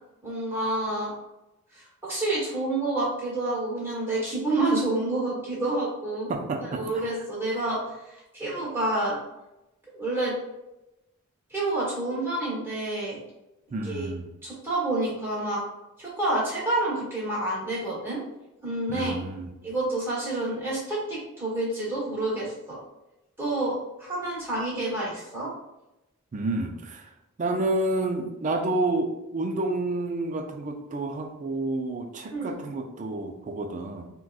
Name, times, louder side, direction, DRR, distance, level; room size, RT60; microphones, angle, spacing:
voice 1, 0.2-1.1 1.7-6.3 6.6-9.2 9.9-10.4 11.5-13.2 13.8-14.1 14.4-15.6 16.0-18.2 18.6-19.2 19.6-22.8 23.4-25.5 32.3-32.6, right 2 dB, 10° right, -7 dB, 1.2 m, -28 dB
voice 2, 6.3-7.1 13.7-14.3 18.9-19.5 26.3-27.1 27.4-34.1, right 2 dB, 35° right, 5 dB, 0.3 m, -29 dB
3.9 x 2.2 x 2.4 m, 0.94 s
head